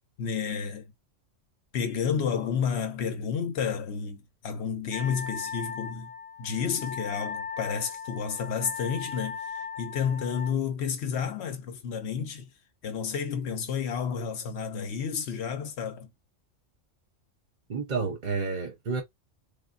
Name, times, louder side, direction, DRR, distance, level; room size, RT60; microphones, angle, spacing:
voice 1, 0.2-0.9 1.7-6.1 6.4-12.5 12.8-16.1, left 7 dB, 65° left, 0.9 m, -31 dB
Wind instrument woodwind instrument, 4.9-10.5, left 6 dB, 45° left, 0.4 m, -38 dB
voice 2, 17.7-19.0, right 4 dB, 45° right, 0.7 m, -30 dB
3.5 x 2.1 x 2.4 m
omnidirectional pair, 1.3 m